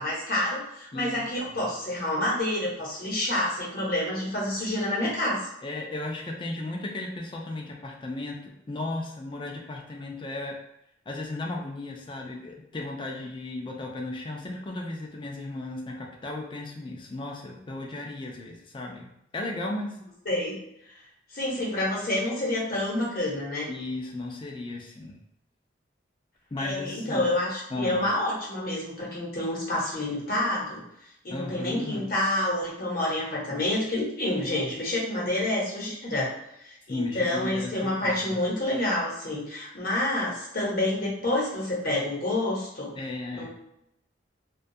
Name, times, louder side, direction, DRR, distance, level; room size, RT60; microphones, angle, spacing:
voice 1, 0.0-5.5 20.3-20.5 21.3-23.7 26.6-30.8 31.2-42.9 43.3-43.5, left 1 dB, 55° left, -5 dB, 0.9 m, -28 dB
voice 2, 0.9-1.3 1.6-1.7 5.6-10.6 11.1-19.1 19.3-20.0 23.7-25.2 26.5-27.3 27.7-28.0 31.3-32.1 36.9-38.4 42.9-43.5, left 2 dB, 25° left, 1 dB, 0.4 m, -35 dB
2.3 x 2.2 x 2.6 m, 0.79 s
head